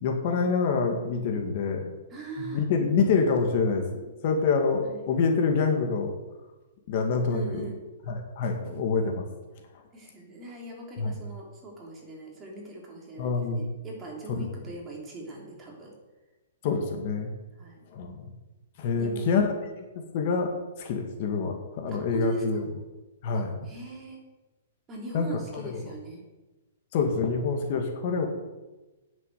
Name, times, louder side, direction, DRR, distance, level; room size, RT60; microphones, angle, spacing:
voice 1, 0.0-1.9 2.4-6.2 6.9-7.6 8.1-9.3 11.0-11.1 13.2-13.8 14.4-14.5 16.6-17.3 17.9-18.3 18.8-19.8 20.1-20.5 20.8-22.6 23.2-23.5 25.1-25.9 26.9-28.3, left 4 dB, 40° left, 4 dB, 2.0 m, -26 dB
voice 2, 2.1-2.7 4.8-5.1 7.3-7.8 9.9-15.9 17.6-17.8 19.0-19.2 21.9-22.7 23.3-24.2 24.9-26.2, right 1 dB, 15° right, -1 dB, 3.1 m, -40 dB
9.9 x 7.5 x 9.2 m, 1.1 s
hypercardioid pair, 160°, 0 cm